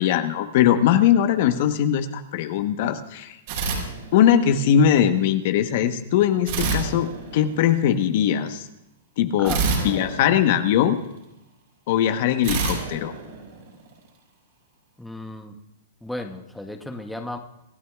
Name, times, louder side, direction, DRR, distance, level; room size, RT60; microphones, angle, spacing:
voice 1, 0.0-3.4 4.1-8.6 9.2-9.5 9.8-11.0 11.9-13.1, left 9 dB, 50° left, 8 dB, 1.1 m, -20 dB
sound 1, 3.5-4.6 6.5-7.8 9.4-11.1 12.4-14.0, right 4 dB, 55° right, 5.1 m, -28 dB
voice 2, 15.0-15.6 16.0-17.4, left 1 dB, ahead, 4 dB, 0.9 m, -34 dB
25.5 x 12.5 x 2.4 m, 0.89 s
hypercardioid pair, 145°, 0 cm